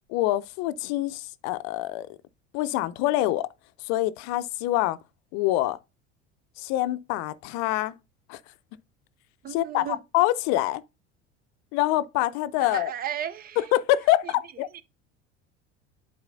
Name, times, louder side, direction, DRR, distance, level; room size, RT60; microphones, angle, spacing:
voice 1, 0.1-2.1 2.5-3.5 3.8-5.0 5.3-5.8 6.6-7.9 8.3-8.4 9.5-10.8 11.7-12.9 13.6-14.8, left 15 dB, 50° left, 0.6 m, -25 dB
voice 2, 9.4-10.0 12.6-13.7 14.2-14.3 14.7-14.8, right 10 dB, 25° right, 0.4 m, -34 dB
11.0 x 4.1 x 2.6 m
figure-of-eight pair, 75°, 35 cm